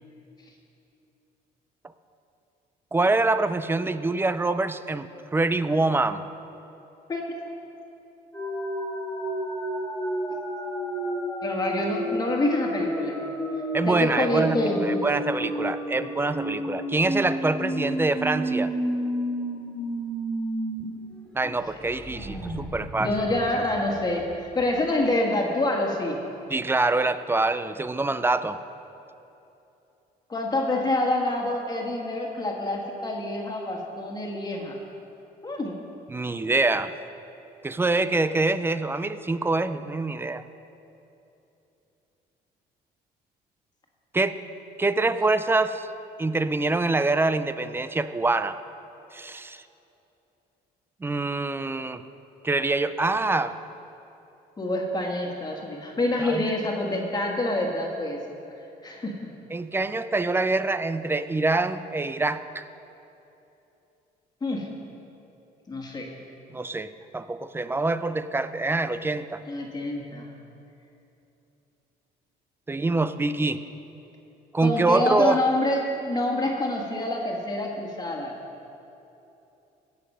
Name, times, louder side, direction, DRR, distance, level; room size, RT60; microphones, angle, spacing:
voice 1, 2.9-6.2 13.7-18.7 21.3-23.1 26.5-28.6 36.1-36.9 37.6-40.4 44.1-44.4 44.8-45.9 46.2-48.6 49.1-49.6 51.0-52.0 52.4-53.6 56.2-56.4 59.5-62.6 66.5-69.4 72.7-73.6 74.5-75.4, right 3 dB, 15° right, 13 dB, 0.4 m, -25 dB
sound 1, 8.3-20.8 21.2-21.3 21.6-24.3, right 1 dB, 5° left, 2.6 m, -31 dB
voice 2, 11.4-13.2 13.8-15.0 21.4-21.6 23.0-26.2 30.3-34.8 35.4-35.7 54.6-58.4 58.8-59.2 64.4-64.7 65.7-66.1 69.5-70.3 74.6-78.4, left 1 dB, 25° left, 0 dB, 1.7 m, -27 dB
16.5 x 6.5 x 5.5 m, 2.9 s
cardioid pair, 110°, 17 cm